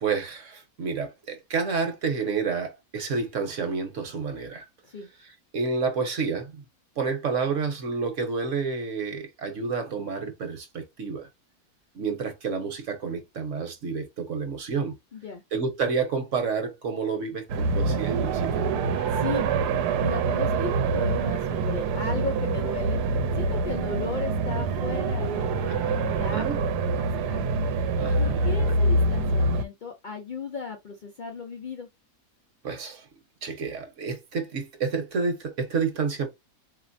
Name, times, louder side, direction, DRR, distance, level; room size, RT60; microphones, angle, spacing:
voice 1, 0.0-4.7 5.5-6.6 7.0-11.3 11.9-14.9 15.5-18.7 25.8-26.6 28.0-28.8 32.6-33.1 33.4-36.3, right 5 dB, 55° right, 1.2 m, -29 dB
voice 2, 15.1-15.4 19.1-19.5 20.0-23.0 23.3-27.6 28.2-31.9, left 4 dB, 80° left, 0.4 m, -36 dB
sound 1, 17.5-29.6, right 3 dB, 80° right, 1.1 m, -25 dB
4.2 x 2.9 x 2.6 m
omnidirectional pair, 1.7 m